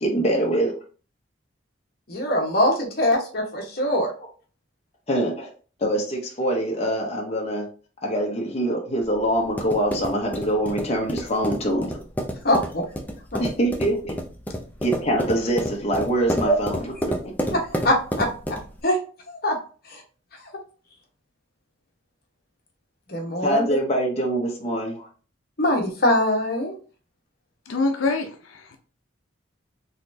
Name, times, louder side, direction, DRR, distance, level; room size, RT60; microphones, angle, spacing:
voice 1, 0.0-0.8 5.1-5.5 5.8-7.7 8.0-12.0 13.4-14.2 14.8-17.3 23.4-25.1, right 1 dB, 35° left, -1 dB, 0.8 m, -24 dB
voice 2, 2.1-4.1 12.4-12.8 16.4-16.5 17.8-18.3 18.8-19.0 19.3-19.5 19.9-20.0 23.1-23.8 25.6-26.7, left 1 dB, 50° left, 0 dB, 1.2 m, -22 dB
sound 1, 9.0-18.8, equal, 10° left, 0.5 m, -30 dB
voice 3, 27.7-28.8, left 3 dB, 90° left, 4 dB, 0.5 m, -25 dB
4.0 x 3.1 x 2.7 m, 0.38 s
head